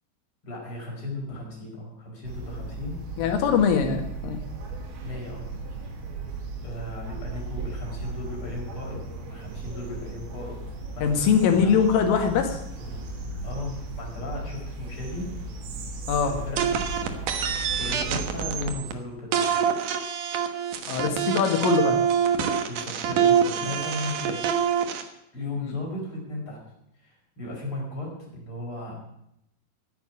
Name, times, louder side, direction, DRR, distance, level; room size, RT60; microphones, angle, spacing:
voice 1, 0.4-3.0 5.0-5.5 5.8-6.0 6.6-11.8 13.4-15.4 16.2-16.7 17.8-19.5 22.7-24.4 25.3-26.6 27.0-29.0, left 2 dB, 25° left, -2 dB, 5.4 m, -36 dB
sound 1, 2.2-18.7, right 2 dB, 60° right, 3.6 m, -36 dB
voice 2, 3.2-4.4 11.0-12.6 16.1-16.3 20.9-22.0 25.6-25.8, left 6 dB, 80° left, 5 dB, 4.3 m, -22 dB
sound 2, 16.6-18.9 19.3-25.0, right 8 dB, 85° right, 1.8 m, -25 dB
11.5 x 9.4 x 9.8 m, 0.80 s
omnidirectional pair, 5.7 m